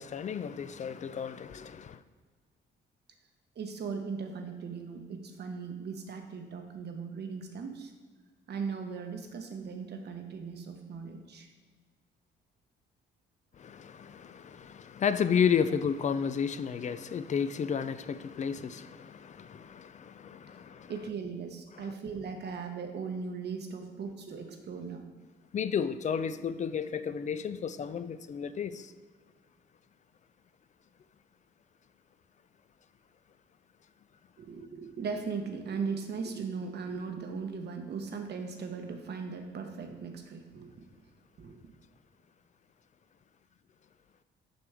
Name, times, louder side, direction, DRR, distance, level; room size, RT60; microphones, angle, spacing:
voice 1, 0.0-2.0 13.6-20.9 21.8-21.9 25.5-28.9, left 7 dB, 40° left, 0.4 m, -32 dB
voice 2, 3.6-7.9 8.5-11.5 20.9-25.1 34.4-40.9 41.4-41.6, right 5 dB, 55° right, 1.0 m, -38 dB
6.4 x 6.1 x 3.5 m
cardioid pair, 90°, 20 cm